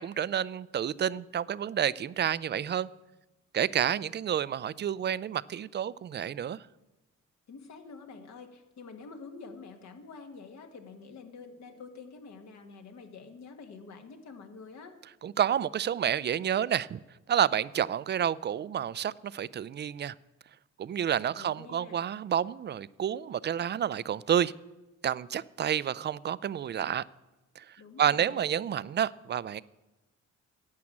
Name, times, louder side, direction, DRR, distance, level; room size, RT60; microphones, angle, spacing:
voice 1, 0.0-2.9 3.5-6.6 15.2-17.0 17.3-20.1 20.8-24.5 25.0-27.0 27.6-27.7 28.0-29.6, right 9 dB, 35° right, 0.4 m, -29 dB
voice 2, 7.5-14.9 21.3-22.0 27.8-28.4, left 4 dB, 65° left, 1.6 m, -47 dB
11.0 x 8.5 x 7.2 m
cardioid pair, 90°, 30 cm